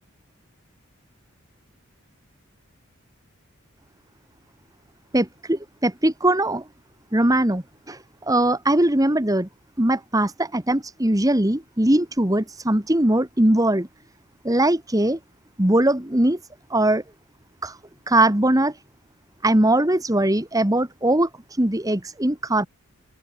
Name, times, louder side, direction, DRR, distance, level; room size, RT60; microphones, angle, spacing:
voice 1, 5.1-6.6 7.1-9.5 9.8-13.9 14.4-15.2 15.6-16.4 16.7-17.0 17.6-17.8 18.1-18.8 19.4-22.7, right 1 dB, 15° right, 1.6 m, -21 dB
open air
head